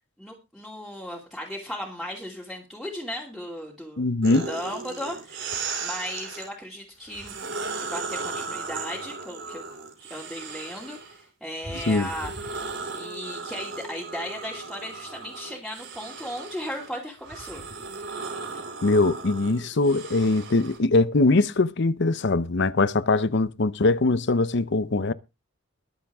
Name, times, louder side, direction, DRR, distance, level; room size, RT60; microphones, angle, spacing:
voice 1, 0.2-5.5 5.8-9.7 10.1-12.6 12.9-17.6, equal, ahead, 2.6 m, -36 dB
voice 2, 4.0-4.5 11.9-12.1 18.8-25.1, left 3 dB, 60° left, 0.8 m, -22 dB
sound 1, 4.2-6.5 7.1-11.2 11.6-20.8, right 4 dB, 65° right, 4.8 m, -36 dB
22.0 x 7.5 x 3.6 m
head